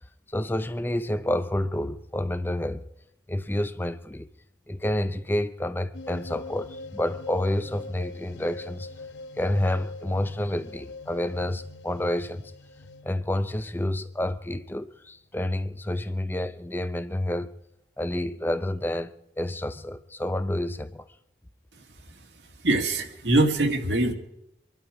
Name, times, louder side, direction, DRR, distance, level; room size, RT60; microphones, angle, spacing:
voice 1, 0.3-2.8 3.3-4.3 4.7-8.9 9.4-12.5 13.0-17.5 18.0-19.1 19.4-21.0, left 1 dB, 10° left, 0.5 m, -29 dB
sound 1, 5.9-14.5, left 3 dB, 90° left, 0.9 m, -43 dB
voice 2, 21.7-24.1, right 2 dB, 80° right, 1.9 m, -25 dB
24.5 x 11.5 x 4.9 m
head